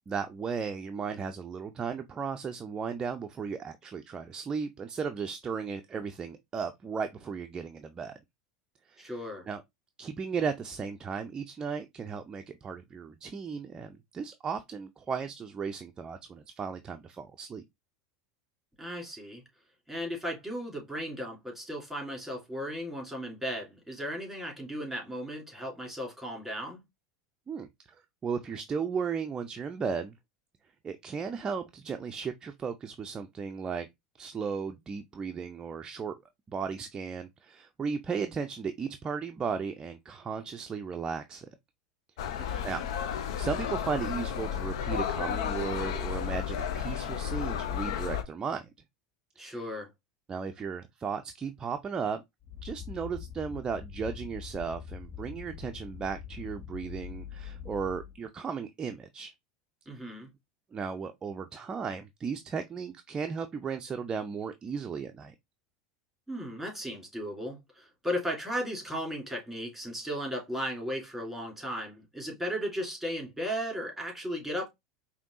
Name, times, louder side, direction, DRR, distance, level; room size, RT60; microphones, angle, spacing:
voice 1, 0.1-8.2 8.9-9.6 10.0-17.6 27.5-27.7 28.2-30.1 30.8-33.9 34.2-36.1 36.5-41.5 42.2-42.8 43.2-48.7 49.4-49.7 50.3-52.2 52.6-59.3 60.7-65.3, right 6 dB, 25° right, 0.4 m, -35 dB
voice 2, 9.0-9.5 18.8-19.4 19.9-26.8 42.4-42.6 49.4-49.9 59.9-60.3 66.3-74.7, equal, ahead, 2.9 m, -36 dB
sound 1, 42.2-48.2, left 9 dB, 75° left, 0.6 m, -32 dB
sound 2, 52.4-58.2, left 8 dB, 45° left, 1.8 m, -43 dB
5.1 x 2.7 x 2.5 m
hypercardioid pair, 95°, 3 cm